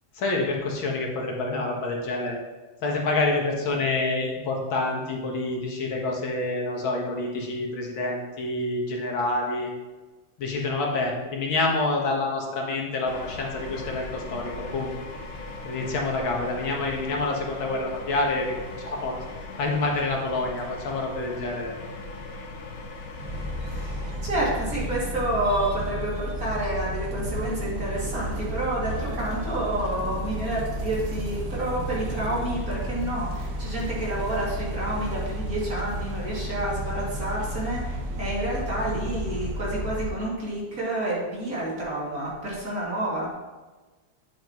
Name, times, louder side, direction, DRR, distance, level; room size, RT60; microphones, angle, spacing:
voice 1, 0.2-2.4 2.8-9.7 10.4-14.9 15.6-19.2 19.6-21.7, left 2 dB, 75° left, 0 dB, 2.0 m, -27 dB
sound 1, 13.1-24.7, left 3 dB, 50° left, 0.9 m, -39 dB
sound 2, 23.2-40.1, equal, 90° right, 2.0 m, -32 dB
sound 3, 23.3-39.0, right 4 dB, 65° right, 1.5 m, -44 dB
voice 2, 23.7-43.3, right 1 dB, 45° right, -6 dB, 2.7 m, -29 dB
9.3 x 7.5 x 3.0 m, 1.2 s
omnidirectional pair, 2.2 m